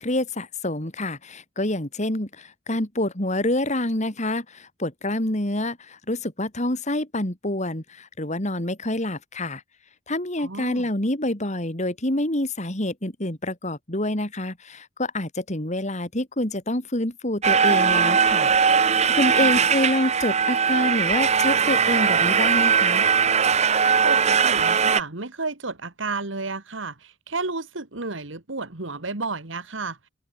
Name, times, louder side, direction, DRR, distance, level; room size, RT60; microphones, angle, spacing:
voice 1, 0.0-9.6 10.1-18.9 19.2-23.1, left 1 dB, 35° left, 3.2 m, -27 dB
voice 2, 10.4-10.9 19.4-19.7 24.0-30.0, right 3 dB, 70° right, 2.1 m, -32 dB
sound 1, 17.4-25.0, right 6 dB, 35° right, 0.9 m, -20 dB
head